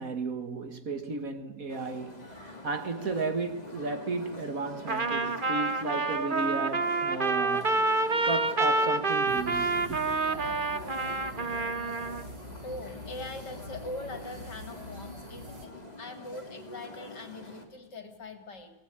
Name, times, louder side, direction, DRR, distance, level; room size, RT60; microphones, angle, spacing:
voice 1, 0.0-7.8 8.2-10.1, right 3 dB, 50° right, 2.0 m, -34 dB
sound 1, 1.7-17.7, left 1 dB, 20° left, 3.6 m, -45 dB
Trumpet, 4.9-12.2, right 3 dB, 30° right, 1.3 m, -28 dB
sound 2, 9.3-15.7, left 1 dB, 70° right, 4.2 m, -45 dB
voice 2, 12.6-18.7, left 2 dB, 65° left, 3.7 m, -42 dB
25.0 x 18.0 x 10.0 m
omnidirectional pair, 2.0 m